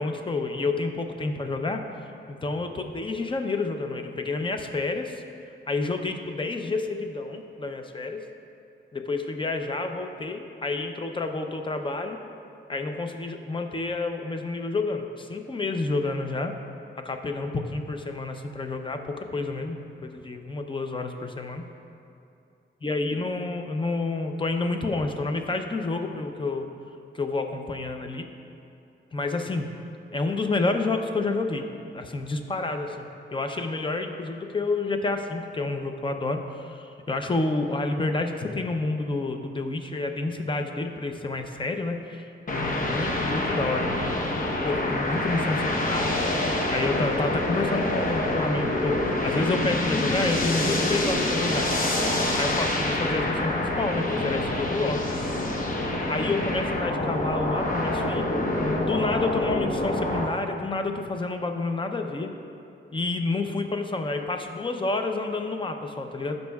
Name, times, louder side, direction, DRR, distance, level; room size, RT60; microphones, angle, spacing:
voice 1, 0.0-1.8 2.3-5.2 5.7-8.2 8.9-12.2 12.7-16.5 17.0-21.6 22.8-26.7 27.1-28.3 29.1-29.7 30.1-31.6 31.9-33.1 33.3-44.1 44.6-46.2 46.7-51.7 52.4-55.1 56.1-58.3 58.6-62.3 62.9-66.4, left 3 dB, 25° left, 5 dB, 0.6 m, -29 dB
sound 1, 42.5-60.3, left 1 dB, 40° left, 0.9 m, -26 dB
15.5 x 5.3 x 2.3 m, 2.6 s
wide cardioid pair, 120°, 21 cm